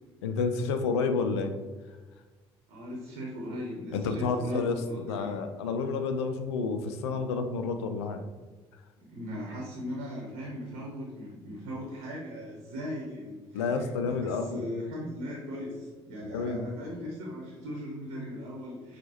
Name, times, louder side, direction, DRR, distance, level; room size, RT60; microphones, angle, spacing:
voice 1, 0.2-1.5 3.9-8.2 13.5-14.7 16.3-16.8, left 4 dB, 80° left, 8 dB, 0.4 m, -30 dB
voice 2, 2.7-5.5 9.0-19.0, equal, 65° right, -3 dB, 1.0 m, -38 dB
6.0 x 2.4 x 2.9 m, 1.3 s
hypercardioid pair, 55°, 14 cm